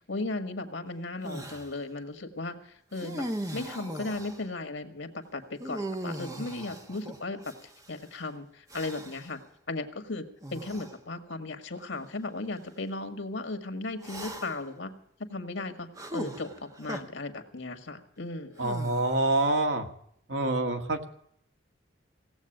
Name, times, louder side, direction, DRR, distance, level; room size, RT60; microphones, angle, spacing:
voice 1, 0.0-2.6 2.9-3.3 3.5-7.5 7.9-9.4 9.7-14.9 15.2-18.6, left 2 dB, 80° left, 8 dB, 1.8 m, -36 dB
sound 1, 1.2-1.7 2.9-4.5 5.6-7.9 8.7-9.3 10.4-10.9 11.8-11.9 14.0-14.7 16.0-17.0 18.6-19.4, right 1 dB, 20° right, 1.2 m, -39 dB
voice 2, 18.6-19.9 20.3-21.0, right 2 dB, 70° right, 4 dB, 1.9 m, -26 dB
17.5 x 8.1 x 8.9 m, 0.70 s
head